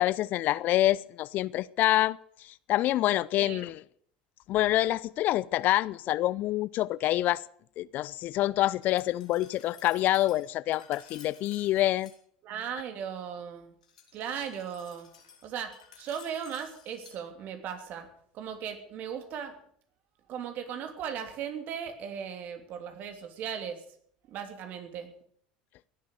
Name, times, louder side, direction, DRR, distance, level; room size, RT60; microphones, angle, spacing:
voice 1, 0.0-3.8 4.5-7.4 7.8-12.1, left 15 dB, 50° left, 0.5 m, -27 dB
Glass, 8.8-12.2 13.8-17.2, left 7 dB, 85° left, 3.4 m, -54 dB
voice 2, 12.4-13.7 14.1-15.1 15.4-18.1 18.3-19.5 20.3-23.8 24.3-25.1, right 8 dB, 50° right, 3.1 m, -37 dB
17.5 x 11.0 x 6.6 m
hypercardioid pair, 75°, 4 cm